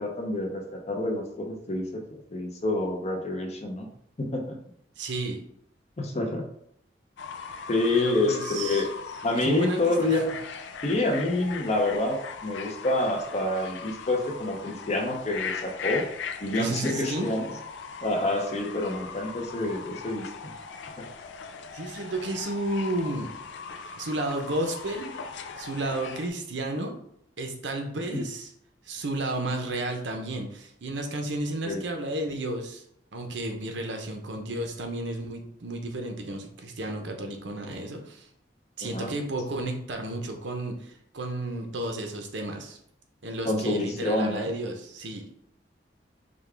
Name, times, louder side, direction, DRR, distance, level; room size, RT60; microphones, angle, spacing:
voice 1, 0.0-3.9 4.2-4.6 6.0-6.5 7.7-8.9 9.2-10.3 10.8-16.1 16.4-17.5 18.0-20.5 21.0-21.1 28.1-28.3 31.7-31.8 38.8-39.1 43.4-44.5, left 2 dB, 40° left, 2 dB, 0.7 m, -27 dB
voice 2, 5.0-5.4 7.9-8.8 9.3-10.2 16.6-17.3 21.7-23.3 23.9-25.1 25.6-27.0 27.4-28.5 28.8-32.8 33.1-38.3 38.8-42.8 43.2-45.3, right 2 dB, 85° right, 4 dB, 0.8 m, -32 dB
Fowl / Bird, 7.2-26.3, left 6 dB, 80° left, 0.4 m, -39 dB
5.2 x 2.3 x 3.3 m, 0.71 s
head